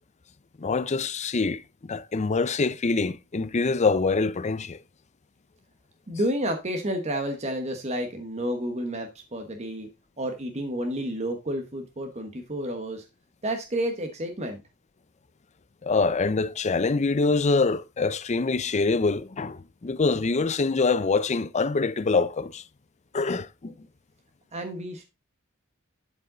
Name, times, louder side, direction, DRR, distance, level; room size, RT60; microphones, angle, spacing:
voice 1, 0.6-4.8 15.8-22.6 23.1-23.7, left 4 dB, 35° left, 0.5 m, -25 dB
voice 2, 6.1-9.9 10.2-13.1 13.4-14.6 24.5-25.0, right 1 dB, 30° right, 1.2 m, -30 dB
11.5 x 5.4 x 3.9 m
head